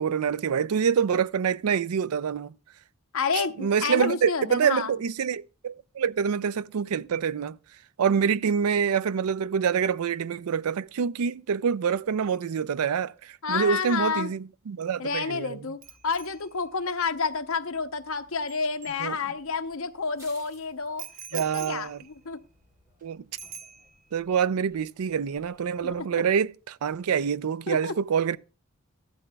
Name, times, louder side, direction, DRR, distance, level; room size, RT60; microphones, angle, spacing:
voice 1, 0.0-2.5 3.6-7.6 8.0-15.6 19.0-19.2 21.3-22.0 23.0-23.2 24.1-28.4, right 7 dB, 80° right, 0.4 m, -26 dB
voice 2, 3.1-4.9 13.4-14.3 15.0-21.0 21.3-22.4 25.8-26.1 27.7-27.9, left 5 dB, 65° left, 0.8 m, -30 dB
Bicycle bell, 15.8-19.6 21.0-23.0 23.4-24.2 24.5-24.8, right 8 dB, 35° right, 0.8 m, -46 dB
sound 1, 18.8-26.3, left 1 dB, 15° right, 3.8 m, -59 dB
14.5 x 12.0 x 2.3 m
head